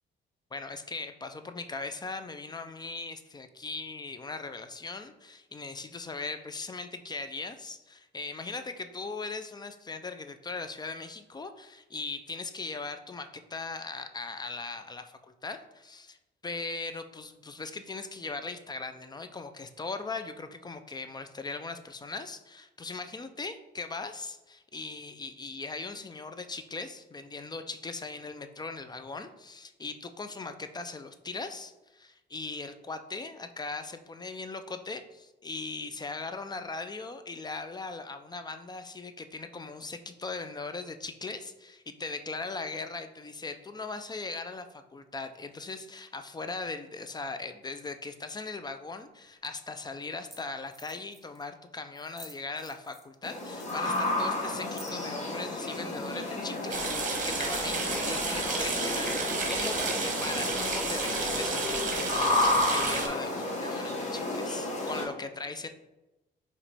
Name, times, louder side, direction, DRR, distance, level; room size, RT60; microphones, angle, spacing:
voice 1, 0.5-16.2 16.4-65.7, left 3 dB, 20° left, 9 dB, 0.4 m, -39 dB
sound 1, 49.2-49.3 50.0-50.1 50.3-50.4 50.7-51.5 51.9-53.2 53.5-55.2, right 1 dB, ahead, 1.0 m, -51 dB
sound 2, 53.2-65.0, left 2 dB, 35° left, 1.1 m, -31 dB
sound 3, 56.7-63.1, right 4 dB, 40° right, 0.9 m, -32 dB
4.8 x 3.0 x 3.4 m, 1.0 s
cardioid pair, 90°, 20 cm